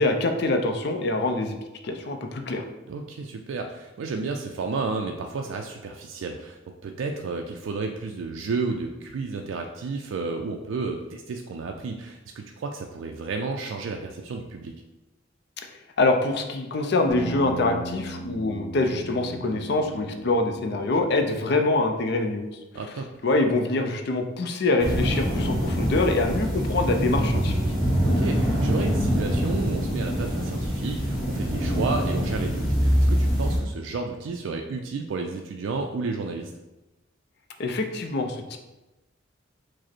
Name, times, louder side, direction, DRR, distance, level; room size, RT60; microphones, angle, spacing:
voice 1, 0.0-1.6 1.8-2.6 16.0-22.4 23.2-27.6 37.6-38.6, left 2 dB, 55° left, 5 dB, 0.4 m, -24 dB
voice 2, 2.9-14.7 22.7-23.1 28.0-36.5, right 4 dB, 70° right, 3 dB, 0.3 m, -32 dB
sound 1, 17.1-21.8, right 2 dB, 15° left, 0.7 m, -37 dB
sound 2, 24.8-33.6, equal, ahead, 1.1 m, -24 dB
4.9 x 2.0 x 4.3 m, 1.1 s
head